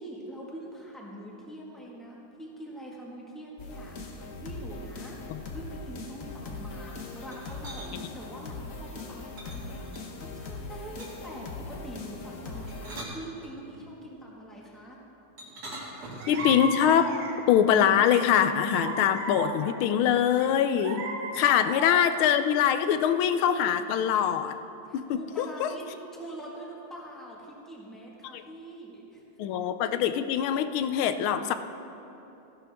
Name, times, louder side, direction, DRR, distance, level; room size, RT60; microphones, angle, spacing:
voice 1, 0.0-15.0 21.3-21.4 21.6-21.8 24.8-25.8 26.1-29.2, right 1 dB, ahead, -3 dB, 1.4 m, -44 dB
sound 1, 3.6-13.0, left 3 dB, 50° left, 1.2 m, -40 dB
sound 2, 7.2-7.9 9.4-10.3 11.0-11.4 12.5-13.9 15.4-16.7, right 1 dB, 50° right, 2.2 m, -43 dB
sound 3, 15.7-15.8 16.2-17.6 18.1-19.9 20.4-22.2, right 3 dB, 75° right, 1.8 m, -35 dB
voice 2, 16.3-17.1 17.5-21.1 21.3-24.6 24.9-25.7 29.4-31.5, left 9 dB, 85° left, 10 dB, 1.4 m, -23 dB
14.5 x 11.5 x 3.5 m, 3.0 s
omnidirectional pair, 2.2 m